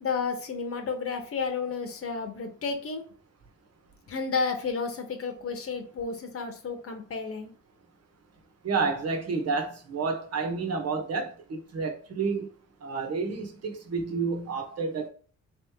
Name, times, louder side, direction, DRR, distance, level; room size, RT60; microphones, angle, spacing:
voice 1, 0.0-3.0 4.1-7.5, left 5 dB, 50° left, 1.2 m, -31 dB
voice 2, 8.6-12.5 12.8-15.1, right 4 dB, 55° right, 1.2 m, -30 dB
3.9 x 3.3 x 3.6 m
cardioid pair, 90°, 30 cm